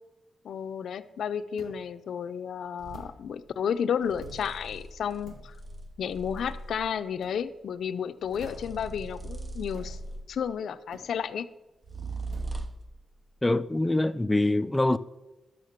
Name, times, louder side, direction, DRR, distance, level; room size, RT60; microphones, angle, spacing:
voice 1, 0.4-5.6 6.0-10.0 10.3-11.5, left 8 dB, 70° left, 0.5 m, -32 dB
sound 1, 1.6-1.9 2.9-3.2 4.2-4.5 5.3-5.5 6.4-6.6 7.2-7.4 8.3-8.8 9.7-10.0 10.9-11.2 12.3-12.6, right 2 dB, 90° right, 2.3 m, -50 dB
sound 2, 2.8-3.1 4.0-7.0 8.2-10.5 11.8-12.9, right 2 dB, 20° right, 0.7 m, -39 dB
voice 2, 13.4-15.0, left 2 dB, 10° left, 0.4 m, -24 dB
12.0 x 6.6 x 6.5 m
wide cardioid pair, 150°, 0 cm